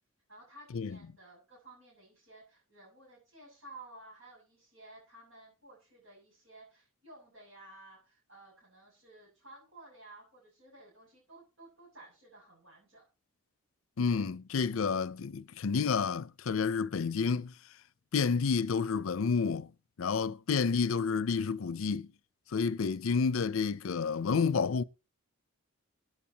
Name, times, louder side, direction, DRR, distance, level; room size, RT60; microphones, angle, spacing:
voice 1, 0.3-13.0, right 2 dB, 65° right, 7.2 m, -54 dB
voice 2, 14.0-17.5 18.1-19.7 20.0-22.1 22.5-24.8, left 5 dB, 75° left, 0.5 m, -30 dB
22.5 x 9.1 x 2.9 m
head